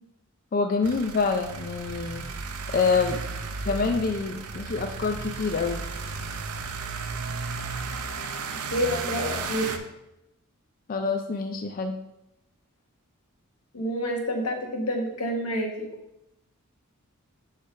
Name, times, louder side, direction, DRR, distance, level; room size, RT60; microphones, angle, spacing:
voice 1, 0.5-2.2 2.7-3.2 3.7-5.9 10.9-12.0, left 4 dB, 40° left, 5 dB, 0.4 m, -26 dB
sound 1, 0.8-9.8, right 4 dB, 80° right, 0.6 m, -34 dB
voice 2, 8.7-9.7 13.7-15.9, equal, 85° left, 2 dB, 1.3 m, -28 dB
6.9 x 3.3 x 5.6 m, 0.88 s
head